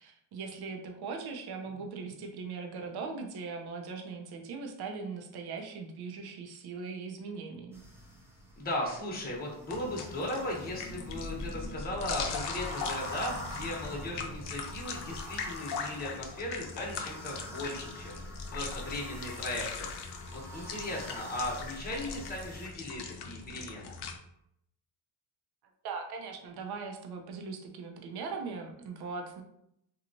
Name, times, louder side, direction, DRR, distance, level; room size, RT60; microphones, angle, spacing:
voice 1, 0.0-7.8 25.8-29.4, right 4 dB, 55° right, 3 dB, 0.7 m, -40 dB
sound 1, 7.7-22.7, left 1 dB, 5° right, 0.6 m, -44 dB
voice 2, 8.6-19.9 20.3-24.0, left 1 dB, 20° left, -3 dB, 0.9 m, -37 dB
sound 2, 9.7-24.2, left 5 dB, 60° left, 0.6 m, -41 dB
2.9 x 2.3 x 2.6 m, 0.77 s
cardioid pair, 95°, 46 cm